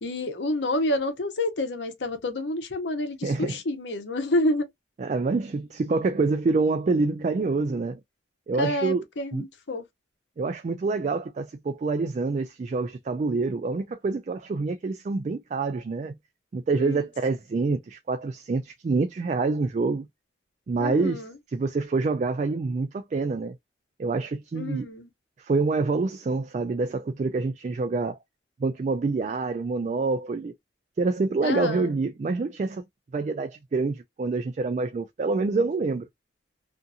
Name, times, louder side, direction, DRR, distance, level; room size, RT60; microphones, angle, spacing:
voice 1, 0.0-4.7 8.6-9.8 16.7-17.1 20.8-21.3 24.5-25.1 31.4-31.9, left 1 dB, 80° left, 0.8 m, -28 dB
voice 2, 3.2-3.6 5.0-8.0 8.5-9.0 9.3-9.5 10.4-16.2 16.5-20.1 20.7-21.2 21.5-23.6 24.0-24.9 25.4-28.2 28.6-30.5 31.0-32.8 33.1-36.1, right 3 dB, 40° right, 0.3 m, -26 dB
2.7 x 2.5 x 2.3 m
head